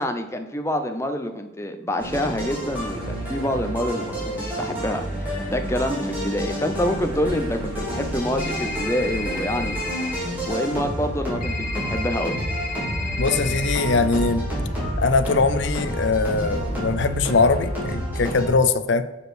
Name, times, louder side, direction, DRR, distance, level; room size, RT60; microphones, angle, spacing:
voice 1, 0.0-9.8 10.5-12.4, equal, 15° left, 6 dB, 0.6 m, -27 dB
sound 1, 2.0-18.4, equal, 10° right, 2.7 m, -29 dB
sound 2, 8.4-10.2 11.4-13.8, left 3 dB, 45° left, 1.4 m, -32 dB
voice 2, 13.2-14.5 15.0-19.0, left 4 dB, 60° left, 11 dB, 0.5 m, -21 dB
6.6 x 5.3 x 6.2 m, 1.1 s
head